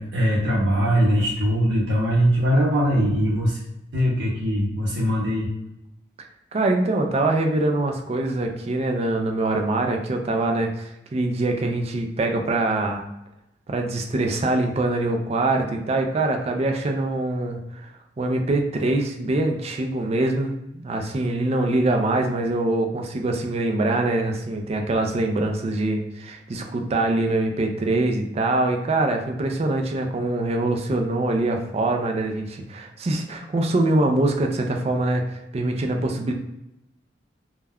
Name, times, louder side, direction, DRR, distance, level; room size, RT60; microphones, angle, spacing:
voice 1, 0.0-3.6 3.9-5.5, equal, 90° right, -7 dB, 0.7 m, -21 dB
voice 2, 6.5-13.1 13.7-17.9 18.2-36.3, right 2 dB, 35° right, 3 dB, 0.4 m, -24 dB
2.2 x 2.1 x 3.4 m, 0.87 s
head